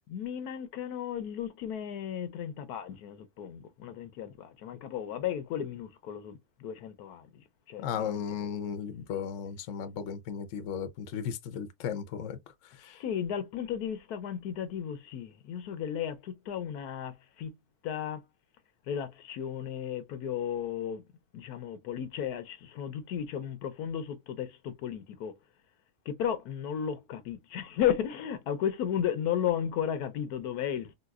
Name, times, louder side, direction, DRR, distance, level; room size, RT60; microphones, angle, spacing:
voice 1, 0.1-8.5 12.8-17.5 17.8-18.2 18.9-21.0 21.3-25.4 26.1-30.9, left 9 dB, 80° left, 1.2 m, -34 dB
voice 2, 7.8-12.4 12.6-12.9, left 7 dB, 65° left, 0.9 m, -35 dB
4.0 x 2.3 x 2.3 m
omnidirectional pair, 1.6 m